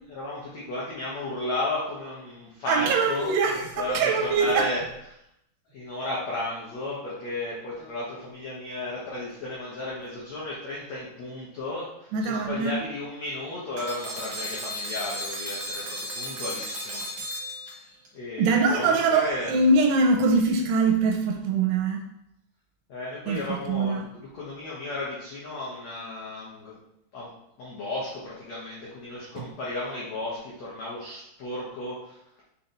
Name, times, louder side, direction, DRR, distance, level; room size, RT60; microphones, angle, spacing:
voice 1, 0.1-3.3 3.8-4.8 5.7-17.4 18.1-19.6 22.9-26.8 27.1-27.3 27.6-32.2, left 2 dB, 75° left, -6 dB, 1.5 m, -34 dB
voice 2, 2.7-4.7 12.1-12.7 18.4-22.0 23.3-24.0, right 3 dB, 80° right, 3 dB, 2.7 m, -23 dB
sound 1, 13.8-18.1, equal, 50° right, 2.1 m, -35 dB
6.4 x 4.2 x 3.9 m, 0.81 s
omnidirectional pair, 4.9 m